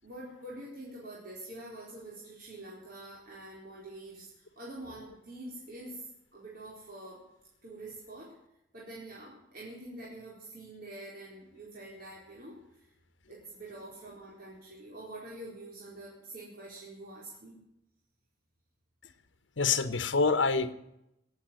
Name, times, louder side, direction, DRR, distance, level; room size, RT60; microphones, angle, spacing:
voice 1, 0.0-4.3 4.6-6.1 6.3-7.2 7.6-8.3 8.7-12.9 13.3-17.6, right 1 dB, 50° right, -6 dB, 4.5 m, -46 dB
voice 2, 19.6-20.7, left 4 dB, 80° left, 10 dB, 1.1 m, -26 dB
19.0 x 8.7 x 7.8 m, 0.83 s
head